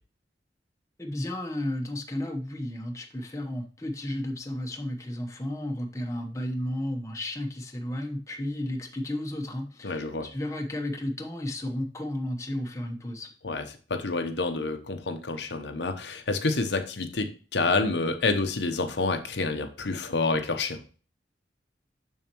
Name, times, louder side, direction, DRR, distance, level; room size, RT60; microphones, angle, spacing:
voice 1, 1.0-13.3, left 1 dB, 15° left, 3 dB, 0.9 m, -33 dB
voice 2, 9.8-10.3 13.4-13.6 13.9-20.8, left 3 dB, 75° left, 6 dB, 0.9 m, -28 dB
7.1 x 6.4 x 3.0 m, 0.37 s
head